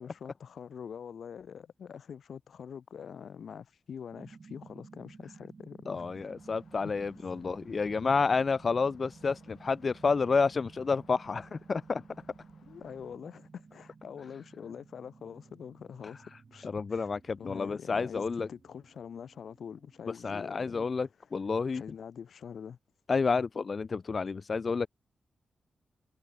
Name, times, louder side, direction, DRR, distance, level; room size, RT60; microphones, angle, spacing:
voice 1, 0.0-6.1 6.8-6.9 12.6-16.2 16.5-17.0 17.4-20.9 21.7-22.8, left 7 dB, 65° left, 2.6 m, -45 dB
sound 1, 4.1-20.6, right 4 dB, 35° right, 2.3 m, -55 dB
voice 2, 5.9-12.0 16.6-18.5 20.2-21.8 23.1-24.9, left 4 dB, 35° left, 0.5 m, -30 dB
sound 2, 6.4-13.2, left 8 dB, 90° left, 4.7 m, -63 dB
wide cardioid pair, 170°, 0 cm